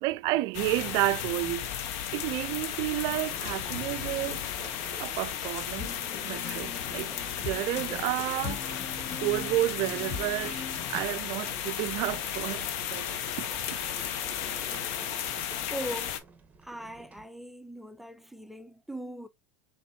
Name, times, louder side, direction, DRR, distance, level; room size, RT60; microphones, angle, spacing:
voice 1, 0.0-1.7 2.1-4.4 5.0-5.9 6.2-7.1 7.4-8.8 9.2-10.6 10.9-13.1 13.4-13.5, right 18 dB, 55° right, 0.4 m, -31 dB
sound 1, 0.5-16.2, left 10 dB, 60° left, 0.8 m, -34 dB
sound 2, 3.3-17.3, right 4 dB, 20° right, 1.0 m, -50 dB
sound 3, 5.8-11.1, left 5 dB, 35° left, 1.0 m, -41 dB
voice 2, 15.6-16.2 16.6-19.3, right 1 dB, ahead, 0.5 m, -40 dB
4.2 x 3.4 x 2.6 m
hypercardioid pair, 100°, 8 cm